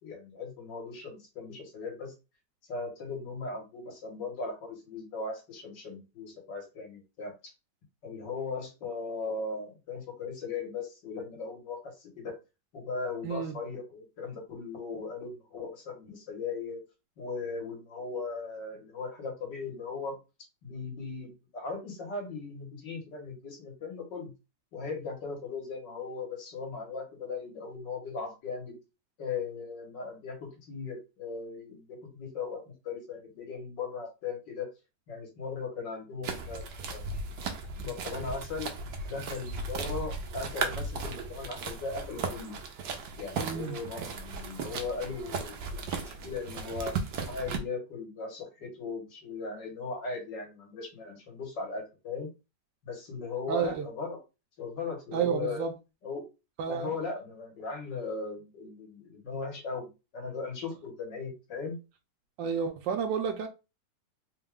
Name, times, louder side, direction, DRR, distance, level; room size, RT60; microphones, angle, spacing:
voice 1, 0.0-2.1 2.7-7.5 8.0-12.3 12.7-16.8 17.2-20.2 20.6-24.3 24.7-28.8 29.2-34.7 35.1-36.6 36.9-37.1 37.8-38.7 39.1-42.6 43.2-46.9 47.3-52.3 52.8-54.2 54.6-55.6 56.0-56.2 56.7-59.9 60.1-61.8, left 4 dB, 80° left, 2.0 m, -38 dB
voice 2, 13.2-13.6 43.4-43.8 53.5-53.9 55.1-55.7 56.6-57.0 62.4-63.5, right 7 dB, 85° right, 1.3 m, -30 dB
sound 1, 36.2-47.6, right 4 dB, 70° right, 1.3 m, -36 dB
4.1 x 2.3 x 3.5 m
omnidirectional pair, 1.9 m